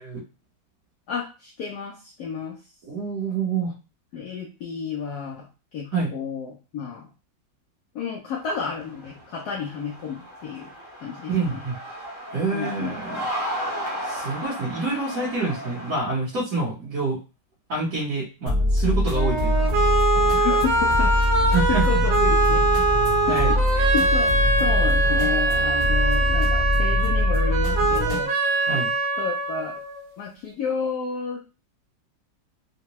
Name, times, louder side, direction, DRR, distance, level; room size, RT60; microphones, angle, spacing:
voice 1, 1.1-2.5 4.1-7.1 7.9-10.7 11.0-11.6 12.5-13.3 20.3-21.1 21.7-22.6 23.3-28.3 28.7-28.9 29.2-29.8 30.2-31.4, left 6 dB, 70° left, -1 dB, 1.0 m, -31 dB
voice 2, 2.8-3.7 5.9-6.1 11.3-11.7 12.3-13.2 14.0-17.2 17.7-19.7 21.5-21.8 23.2-23.6 28.7-28.9, right 3 dB, 50° right, -7 dB, 1.4 m, -27 dB
sound 1, 8.3-16.0, equal, 25° left, 0.7 m, -35 dB
sound 2, 18.5-28.2, left 1 dB, 30° right, 0.9 m, -23 dB
sound 3, 19.1-30.1, right 2 dB, 85° right, 1.5 m, -23 dB
3.6 x 2.2 x 2.9 m, 0.32 s
omnidirectional pair, 2.0 m